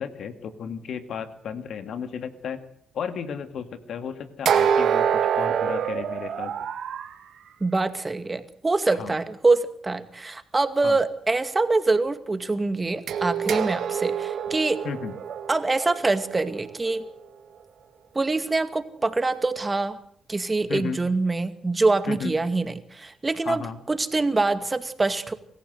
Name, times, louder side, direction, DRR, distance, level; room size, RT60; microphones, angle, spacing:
voice 1, 0.0-2.6 2.9-6.5 8.9-9.2 10.8-11.0 14.8-15.1 20.7-21.0 22.1-22.3 23.5-23.8, left 7 dB, 70° left, 9 dB, 2.2 m, -34 dB
sound 1, 4.5-7.1 13.1-17.1, right 8 dB, 70° right, 2.0 m, -26 dB
voice 2, 7.6-14.8 15.5-17.1 18.1-20.0 20.3-25.3, right 3 dB, 30° right, 10 dB, 2.3 m, -24 dB
25.5 x 15.0 x 8.1 m, 0.67 s
supercardioid pair, 50°, 0 cm